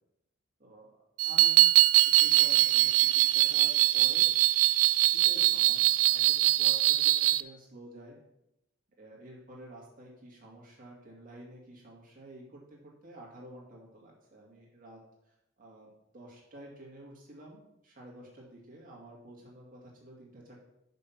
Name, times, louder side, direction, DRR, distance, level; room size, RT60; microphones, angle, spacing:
voice 1, 0.6-1.7 2.0-4.3 4.8-8.2 9.0-15.0 15.6-20.6, right 1 dB, 40° right, -2 dB, 2.2 m, -50 dB
sound 1, 1.2-7.4, right 15 dB, 90° right, 0.3 m, -23 dB
6.2 x 5.5 x 5.7 m, 0.84 s
head